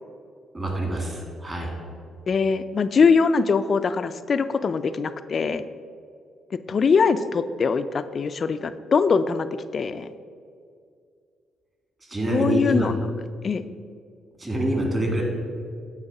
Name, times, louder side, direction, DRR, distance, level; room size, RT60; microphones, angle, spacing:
voice 1, 0.5-1.7 12.1-12.9 14.4-15.2, right 1 dB, 25° right, 0 dB, 1.8 m, -25 dB
voice 2, 2.3-5.6 6.7-9.5 9.7-10.1 12.3-13.0 13.4-13.6, left 5 dB, 45° left, 12 dB, 0.3 m, -22 dB
8.9 x 3.6 x 5.9 m, 2.2 s
cardioid pair, 90°, 0 cm